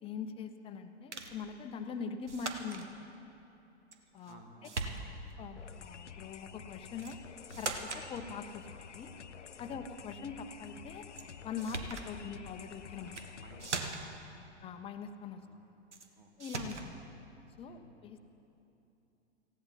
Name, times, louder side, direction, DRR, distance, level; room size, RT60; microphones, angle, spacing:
voice 1, 0.0-3.1 4.1-4.4 5.4-7.2 7.6-9.1 9.6-11.0 11.4-13.2 14.6-15.4 16.4-17.0 17.6-18.2, left 6 dB, 15° left, 7 dB, 0.8 m, -43 dB
sound 1, 1.1-1.4 2.3-2.9 3.9-4.4 4.6-5.3 7.0-7.2 7.5-8.1 11.2-11.3 11.6-12.1 13.0-13.3 13.6-14.2 15.9-16.1 16.4-16.9, right 3 dB, 80° right, 1.4 m, -40 dB
voice 2, 4.2-4.8 9.6-9.9 13.0-14.5 15.4-15.6 16.2-16.3 17.6-17.9, right 3 dB, 50° right, 4 dB, 2.1 m, -57 dB
sound 2, 5.6-13.9, left 7 dB, 80° left, 0.6 m, -50 dB
19.0 x 16.0 x 4.1 m, 2.9 s
figure-of-eight pair, 110°, 35 cm